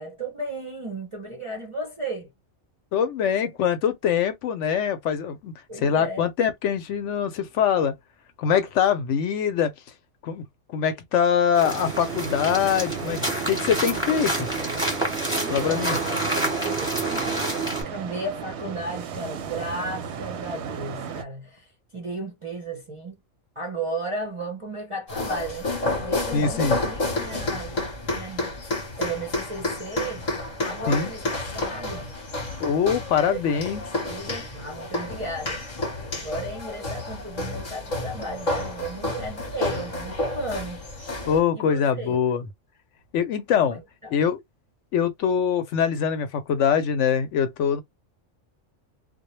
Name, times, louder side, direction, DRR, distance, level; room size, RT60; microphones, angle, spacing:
voice 1, 0.0-2.3 5.7-6.3 15.3-16.1 16.6-17.6 17.9-23.2 23.6-25.7 26.0-27.8 28.1-28.5 29.0-30.3 30.6-31.3 31.5-32.1 33.3-33.6 34.0-35.8 36.1-40.8 41.5-42.3 43.7-44.2, right 2 dB, 40° right, 0.4 m, -34 dB
voice 2, 2.9-5.5 5.8-7.9 8.4-9.7 10.2-10.4 10.7-14.5 15.5-16.0 26.3-26.8 30.9-31.1 32.6-33.8 41.3-42.4 43.1-43.8 44.1-44.4 44.9-47.8, left 7 dB, 70° left, 0.8 m, -23 dB
sound 1, 11.5-17.8, right 2 dB, 5° right, 0.9 m, -28 dB
sound 2, 11.7-21.2, right 7 dB, 65° right, 0.8 m, -35 dB
sound 3, 25.1-41.4, left 2 dB, 40° left, 0.8 m, -30 dB
2.1 x 2.1 x 3.0 m
omnidirectional pair, 1.4 m